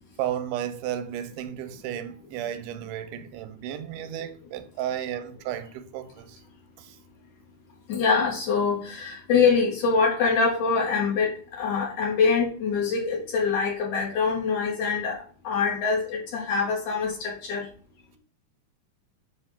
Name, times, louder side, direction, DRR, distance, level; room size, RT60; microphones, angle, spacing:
voice 1, 0.2-6.4 6.8-7.0, right 10 dB, 85° right, 2.1 m, -33 dB
voice 2, 7.9-11.3 11.6-15.2 15.4-17.6, left 5 dB, 70° left, 2.9 m, -24 dB
7.0 x 2.6 x 5.7 m
omnidirectional pair, 3.6 m